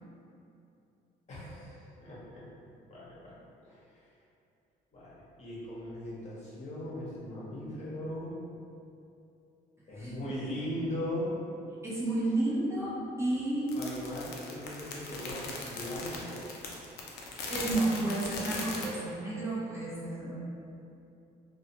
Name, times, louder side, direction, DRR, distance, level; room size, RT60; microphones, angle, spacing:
voice 1, 1.3-2.4 2.9-3.3 3.6-3.9 4.9-8.3 9.9-11.3 13.7-16.4, left 1 dB, 40° left, -8 dB, 0.9 m, -39 dB
voice 2, 10.0-10.3 11.8-13.7 17.5-20.4, right 2 dB, 15° right, -8 dB, 0.5 m, -31 dB
sound 1, 13.7-18.9, left 3 dB, 70° left, 0.4 m, -39 dB
2.4 x 2.3 x 2.7 m, 2.7 s
cardioid pair, 110°, 17 cm